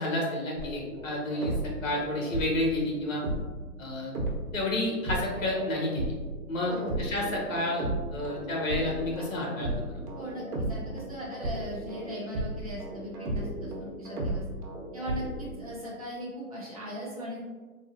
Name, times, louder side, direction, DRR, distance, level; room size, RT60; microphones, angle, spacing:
voice 1, 0.0-3.2 3.8-4.1 4.5-6.1 6.5-7.8 8.1-10.0, left 1 dB, 60° left, -2 dB, 1.0 m, -30 dB
sound 1, 0.6-4.7 5.1-15.7, right 1 dB, 80° right, 1.0 m, -35 dB
voice 2, 6.6-7.0 10.2-14.4 14.9-17.4, equal, 25° right, -7 dB, 0.4 m, -38 dB
3.6 x 2.0 x 2.4 m, 1.4 s
hypercardioid pair, 155°, 45 cm